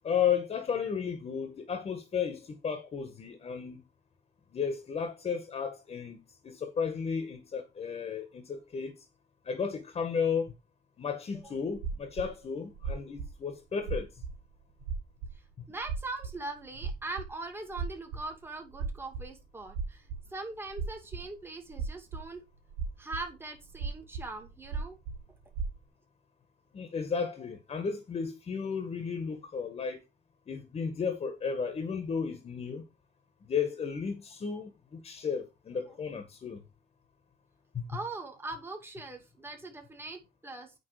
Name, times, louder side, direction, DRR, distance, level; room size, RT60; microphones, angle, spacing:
voice 1, 0.0-3.8 4.5-6.2 6.4-8.9 9.5-10.5 11.0-14.2 26.7-30.0 30.5-32.8 33.4-36.6 37.7-37.9, left 6 dB, 35° left, 1.8 m, -33 dB
sound 1, 11.4-11.5 11.7-12.3 12.7-13.3 13.8-14.3 14.8-15.0 15.2-15.3 15.7-16.3 16.8-17.3 17.7-19.3 19.6-20.3 20.7-21.3 21.7-22.2 22.7-25.8, right 5 dB, 85° right, 2.4 m, -36 dB
voice 2, 15.7-22.4 23.0-25.0 35.9-36.0 37.9-40.7, right 2 dB, 15° right, 2.4 m, -41 dB
9.2 x 3.9 x 5.1 m
cardioid pair, 110°, 17 cm